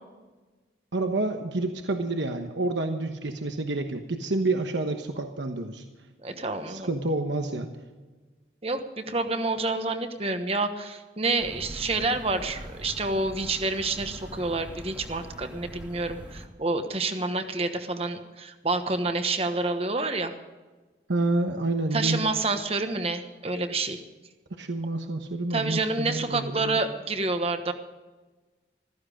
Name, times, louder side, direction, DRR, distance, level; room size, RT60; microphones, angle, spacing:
voice 1, 0.9-5.8 6.7-7.7 21.1-22.4 24.6-26.8, right 2 dB, 80° right, 5 dB, 1.1 m, -28 dB
voice 2, 6.2-6.9 8.6-20.3 21.9-24.0 25.5-27.7, right 3 dB, 30° right, 7 dB, 1.2 m, -28 dB
sound 1, 11.4-16.5, equal, 10° right, 1.8 m, -43 dB
15.0 x 14.5 x 5.1 m, 1.3 s
head